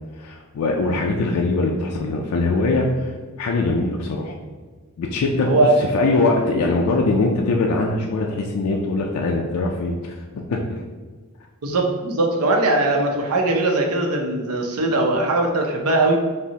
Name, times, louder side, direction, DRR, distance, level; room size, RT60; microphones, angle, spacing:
voice 1, 0.2-3.1 3.4-4.3 5.0-10.8, left 3 dB, 90° left, 0 dB, 0.4 m, -22 dB
voice 2, 5.5-5.8 11.6-16.2, right 2 dB, 85° right, 2 dB, 0.6 m, -20 dB
5.3 x 2.0 x 2.8 m, 1.4 s
head